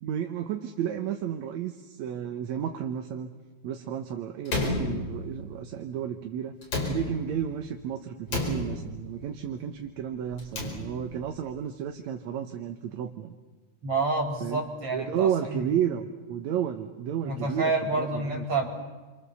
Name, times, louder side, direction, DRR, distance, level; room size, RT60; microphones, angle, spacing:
voice 1, 0.0-3.3 3.6-6.5 6.9-13.4 14.4-14.6 14.9-17.7 18.0-18.5, right 9 dB, 70° right, 5 dB, 2.3 m, -32 dB
Slam, 4.5-5.6 6.6-7.5 8.3-9.2 10.3-11.3, left 2 dB, 50° left, 5.8 m, -32 dB
voice 2, 13.8-15.7 17.3-18.7, right 3 dB, 45° right, 1 dB, 5.3 m, -28 dB
29.5 x 25.5 x 7.0 m, 1.3 s
omnidirectional pair, 3.5 m